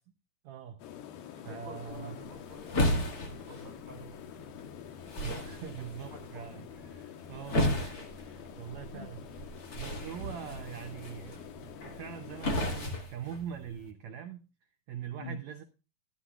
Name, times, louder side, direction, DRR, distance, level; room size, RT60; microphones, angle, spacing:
voice 1, 0.4-0.9 1.3-2.2 5.0-9.2 9.7-14.4 14.9-15.6, right 8 dB, 85° right, 1.6 m, -43 dB
sound 1, 0.8-12.9, left 9 dB, 90° left, 3.0 m, -47 dB
voice 2, 1.3-4.5 6.1-6.6 8.9-9.1 10.2-10.8 15.2-15.4, equal, 10° left, 6.2 m, -47 dB
sound 2, 1.9-13.9, left 1 dB, 45° left, 1.2 m, -35 dB
11.5 x 10.5 x 2.3 m
omnidirectional pair, 4.3 m